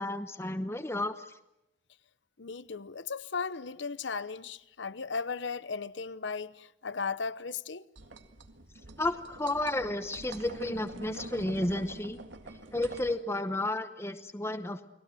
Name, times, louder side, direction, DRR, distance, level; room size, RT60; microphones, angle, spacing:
voice 1, 0.0-1.4 9.0-12.2 12.7-14.9, left 1 dB, 15° left, 0.9 m, -32 dB
voice 2, 2.4-7.8, left 5 dB, 75° left, 0.8 m, -36 dB
sound 1, 8.0-13.2, right 2 dB, 80° right, 1.9 m, -45 dB
30.0 x 20.5 x 7.7 m
head